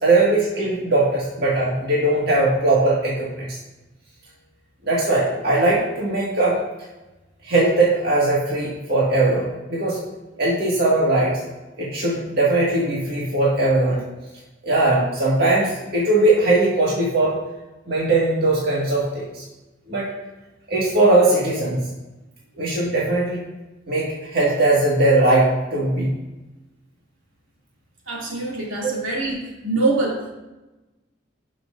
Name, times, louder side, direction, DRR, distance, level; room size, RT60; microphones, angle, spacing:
voice 1, 0.0-3.6 4.8-6.6 7.4-10.0 10.4-11.4 11.8-14.0 14.6-17.4 17.9-19.4 19.9-20.1 20.7-21.9 22.6-23.4 23.9-26.1 28.8-28.9, right 2 dB, 55° right, -6 dB, 1.9 m, -19 dB
voice 2, 28.1-30.3, right 2 dB, 80° right, -3 dB, 2.8 m, -24 dB
18.0 x 6.1 x 2.6 m, 1.1 s
head